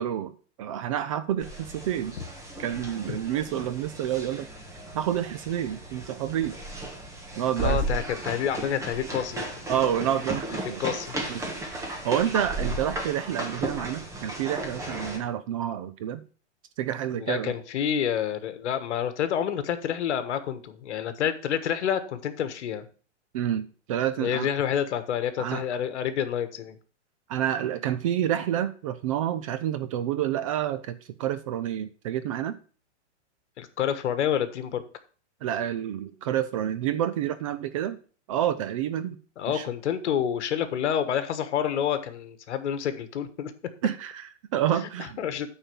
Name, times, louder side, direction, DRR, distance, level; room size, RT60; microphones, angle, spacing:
voice 1, 0.0-2.1 2.6-4.5 4.9-6.6 7.4-7.8 9.7-10.8 11.3-11.5 11.7-16.2 16.8-17.5 23.3-24.5 25.4-25.6 27.3-32.5 35.4-38.0 38.3-39.2 39.5-39.7 43.8-45.2, right 10 dB, 30° right, 12 dB, 0.4 m, -29 dB
sound 1, 1.4-15.2, right 2 dB, 10° right, 1.3 m, -35 dB
voice 2, 7.6-9.5 10.8-11.1 17.1-22.9 24.2-26.8 33.6-34.8 39.4-43.5 45.2-45.5, left 9 dB, 70° left, 11 dB, 1.5 m, -28 dB
9.0 x 4.4 x 7.0 m, 0.40 s
hypercardioid pair, 155°, 36 cm